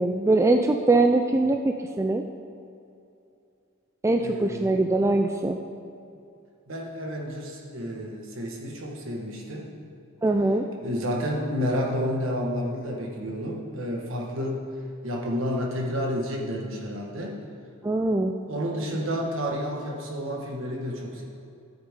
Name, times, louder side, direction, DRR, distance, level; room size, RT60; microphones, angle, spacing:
voice 1, 0.0-2.2 4.0-5.6 10.2-10.6 17.8-18.3, right 2 dB, 15° right, 4 dB, 0.3 m, -22 dB
voice 2, 4.2-4.7 6.7-9.7 10.8-14.7 15.0-17.4 18.5-21.2, equal, 65° right, 0 dB, 1.5 m, -30 dB
14.0 x 8.0 x 3.7 m, 2.6 s
head